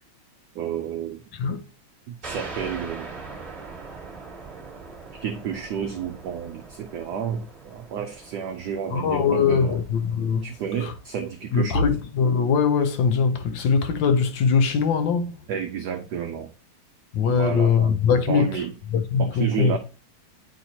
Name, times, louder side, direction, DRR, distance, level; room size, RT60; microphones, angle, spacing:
voice 1, 0.5-1.2 2.1-3.2 5.2-9.8 10.4-12.0 15.5-16.5 17.3-17.9 18.3-18.7 19.2-19.8, right 7 dB, 80° right, 0.9 m, -31 dB
sound 1, 2.2-11.4, right 4 dB, 25° right, 1.4 m, -41 dB
voice 2, 8.9-10.4 11.5-15.3 17.1-18.5 18.9-19.8, left 6 dB, 70° left, 1.3 m, -21 dB
9.4 x 4.3 x 2.8 m
omnidirectional pair, 2.3 m